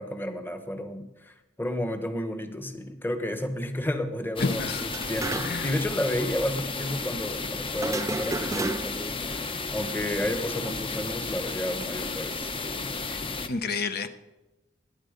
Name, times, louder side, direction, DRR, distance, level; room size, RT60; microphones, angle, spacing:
voice 1, 0.0-9.1 9.7-12.5, left 1 dB, 10° left, 8 dB, 1.2 m, -31 dB
voice 2, 4.4-4.8 5.4-5.7 13.1-13.2 13.5-14.1, left 4 dB, 55° left, 10 dB, 0.9 m, -29 dB
sound 1, 4.4-13.5, left 3 dB, 30° left, 0.9 m, -33 dB
sound 2, 4.9-5.8 6.0-6.1 7.8-9.1, right 3 dB, 15° right, 0.4 m, -32 dB
19.5 x 9.5 x 5.1 m, 1.0 s
head